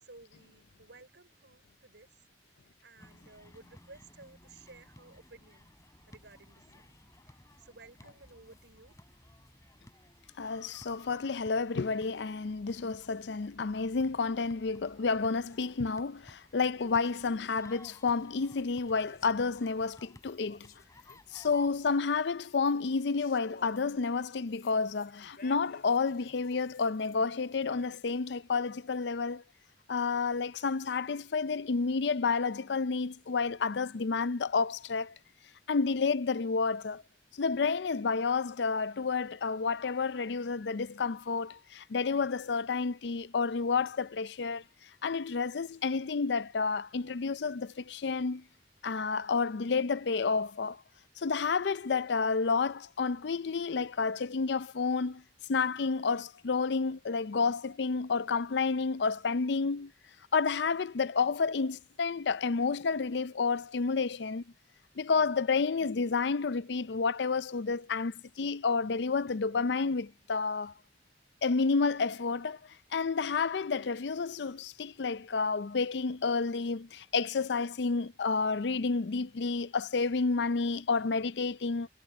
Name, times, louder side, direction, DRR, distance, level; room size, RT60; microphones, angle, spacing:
voice 1, 0.0-2.1 2.8-5.7 6.1-7.0 7.3-9.0, right 3 dB, 80° right, 5.1 m, -56 dB
sound 1, 3.0-22.0, left 1 dB, 20° left, 3.4 m, -57 dB
voice 2, 10.4-20.7 21.3-29.4 29.9-35.1 35.7-37.0 37.3-44.6 45.0-48.4 48.8-50.8 51.2-55.2 55.5-59.9 60.3-64.4 65.0-70.7 71.4-72.6 72.9-81.9, left 4 dB, 75° left, 0.5 m, -30 dB
sound 2, 18.9-19.7 20.1-21.5 21.8-28.0, left 4 dB, 55° left, 4.2 m, -57 dB
head